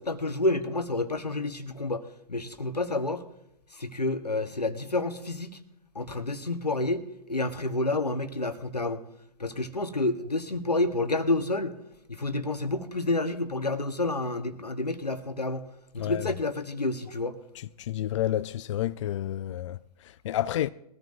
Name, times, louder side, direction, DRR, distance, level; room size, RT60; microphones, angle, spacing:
voice 1, 0.0-2.0 2.3-3.2 3.7-5.5 5.9-9.0 9.4-11.8 12.1-15.6 15.9-17.4, left 2 dB, 90° left, 1.3 m, -29 dB
voice 2, 16.0-16.3 17.6-20.7, left 12 dB, 50° left, 0.4 m, -30 dB
21.5 x 13.5 x 2.6 m
figure-of-eight pair, 115°, 20 cm